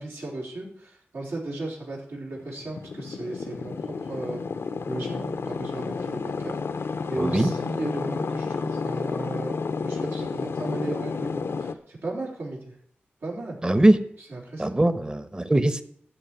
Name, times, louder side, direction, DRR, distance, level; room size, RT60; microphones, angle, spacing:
voice 1, 0.0-4.4 4.9-6.6 7.1-9.5 9.8-12.8 13.2-13.6 14.3-14.9, right 2 dB, 80° right, -3 dB, 4.2 m, -35 dB
sound 1, 2.3-11.7, left 4 dB, 80° left, 0.8 m, -31 dB
voice 2, 7.2-7.5 13.6-14.0 14.6-15.8, right 1 dB, 20° right, 12 dB, 1.1 m, -20 dB
13.0 x 5.3 x 9.1 m, 0.66 s
cardioid pair, 50°, 4 cm